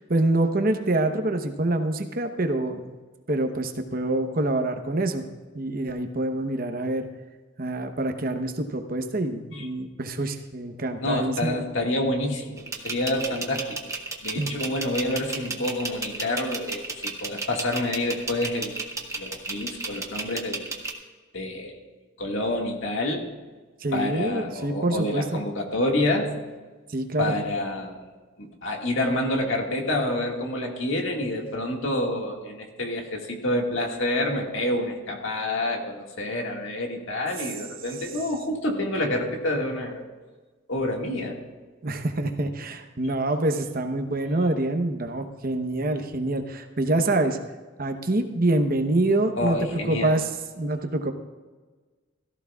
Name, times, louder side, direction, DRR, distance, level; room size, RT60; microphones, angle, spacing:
voice 1, 0.0-3.0 3.3-5.2 5.5-7.1 7.6-11.6 14.3-14.5 23.8-25.4 26.9-27.4 41.8-47.4 47.8-50.2 50.6-51.1, right 2 dB, 45° right, 6 dB, 0.9 m, -26 dB
voice 2, 11.0-13.8 14.2-18.8 19.1-20.7 21.3-21.8 22.2-23.3 23.9-26.3 27.2-28.0 28.4-40.0 40.7-41.4 44.3-44.5 49.4-50.2, left 1 dB, 70° left, 1 dB, 1.9 m, -28 dB
sound 1, 12.6-20.9, right 3 dB, 15° right, 1.0 m, -32 dB
17.0 x 14.0 x 2.4 m, 1.3 s
head